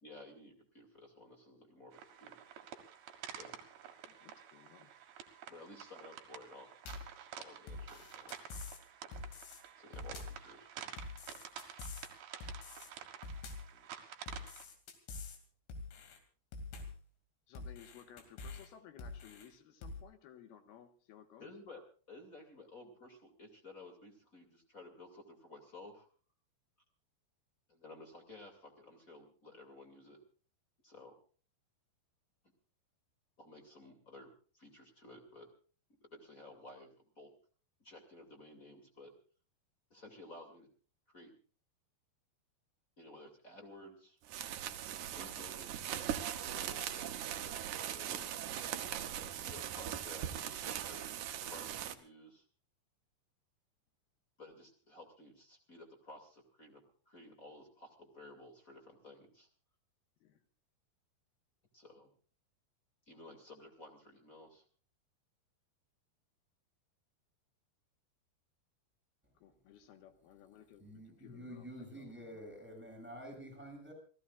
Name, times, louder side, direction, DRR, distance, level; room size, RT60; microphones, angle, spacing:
voice 1, 0.0-2.4 3.4-3.6 5.5-6.7 7.4-8.4 9.8-10.7 21.4-21.8 22.1-26.1 27.7-30.2 30.8-31.1 33.4-35.5 36.0-37.3 37.8-39.1 39.9-40.7 41.1-41.3 43.0-44.2 45.1-45.9 46.5-47.4 47.9-48.8 49.2-52.4 54.4-59.5 61.7-62.1 63.1-64.6, left 2 dB, 25° left, 3 dB, 2.0 m, -54 dB
sound 1, 1.9-14.7, right 9 dB, 65° right, 3.4 m, -50 dB
voice 2, 4.1-4.9 13.7-14.1 17.5-21.5 60.2-60.4 69.4-72.4, left 9 dB, 65° left, 7 dB, 3.1 m, -58 dB
sound 2, 6.9-7.2 7.7-8.8 9.1-9.6 9.9-10.4 11.0-12.1 12.4-12.9 13.2-13.7 14.3-15.4 15.7-16.2 16.5-17.0 17.5-18.7 19.0-19.5 19.8-20.0, left 3 dB, 85° left, 4.9 m, -46 dB
sound 3, 44.2-51.9, right 10 dB, 85° right, 1.7 m, -40 dB
voice 3, 70.8-73.9, equal, ahead, 1 dB, 7.1 m, -49 dB
28.5 x 16.5 x 2.5 m, 0.40 s
omnidirectional pair, 5.1 m